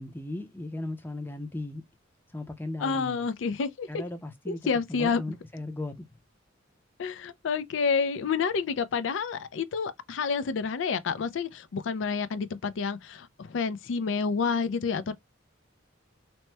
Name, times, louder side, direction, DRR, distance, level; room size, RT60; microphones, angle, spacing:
voice 1, 0.0-1.8 2.3-3.2 3.9-4.6 4.9-6.1, left 2 dB, 10° left, 0.5 m, -36 dB
voice 2, 2.8-4.0 4.5-5.2 7.0-15.1, left 5 dB, 70° left, 0.4 m, -29 dB
2.9 x 2.1 x 3.2 m
head